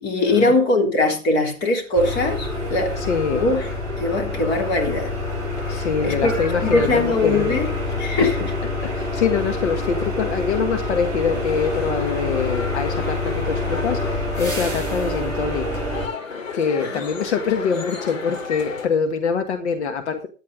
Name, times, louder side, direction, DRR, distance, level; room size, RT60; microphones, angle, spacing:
voice 1, 0.0-2.9 3.3-3.7 4.0-5.1 6.0-6.3 6.6-7.7 8.0-8.4 16.8-17.0, left 2 dB, 25° left, 3 dB, 3.2 m, -21 dB
sound 1, 1.9-16.1, left 2 dB, 10° left, 7.8 m, -26 dB
voice 2, 2.9-3.4 5.7-7.7 8.2-8.3 8.8-16.1 16.5-20.3, left 6 dB, 55° left, 6 dB, 1.7 m, -24 dB
sound 2, 11.3-18.9, left 5 dB, 70° left, 3.2 m, -34 dB
14.5 x 10.0 x 3.8 m, 0.35 s
hypercardioid pair, 130°, 40 cm